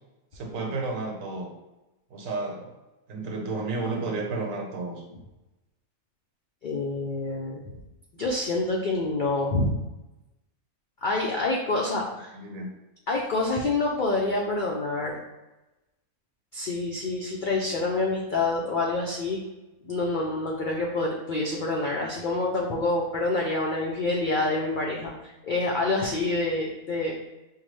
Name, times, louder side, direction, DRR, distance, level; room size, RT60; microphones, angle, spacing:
voice 1, 0.3-1.5 2.1-2.7 3.1-5.0 12.3-12.7, right 3 dB, 70° right, 2 dB, 1.0 m, -32 dB
voice 2, 6.6-7.6 8.2-9.8 11.0-12.3 13.1-15.2 16.5-19.4 19.8-27.1, left 2 dB, 85° left, -1 dB, 0.4 m, -27 dB
5.5 x 2.1 x 3.1 m, 1.0 s
omnidirectional pair, 1.5 m